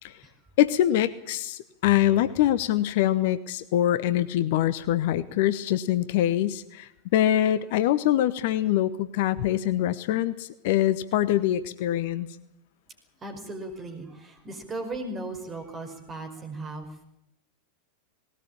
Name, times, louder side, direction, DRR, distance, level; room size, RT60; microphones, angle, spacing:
voice 1, 0.6-12.3, left 12 dB, 50° left, 14 dB, 1.0 m, -24 dB
voice 2, 13.2-17.0, right 2 dB, 20° right, 5 dB, 5.2 m, -37 dB
19.5 x 18.0 x 8.8 m, 0.81 s
figure-of-eight pair, 90°, 0 cm